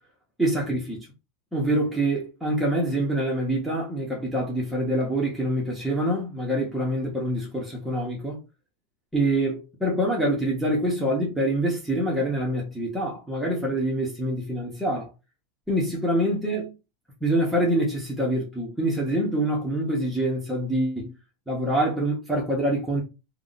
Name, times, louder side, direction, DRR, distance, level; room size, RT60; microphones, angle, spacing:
voice 1, 0.4-1.0 1.5-8.4 9.1-15.1 15.7-16.7 17.2-21.1 21.5-23.0, right 1 dB, 5° right, 1.0 m, -25 dB
2.8 x 2.3 x 3.9 m
supercardioid pair, 160°, 0 cm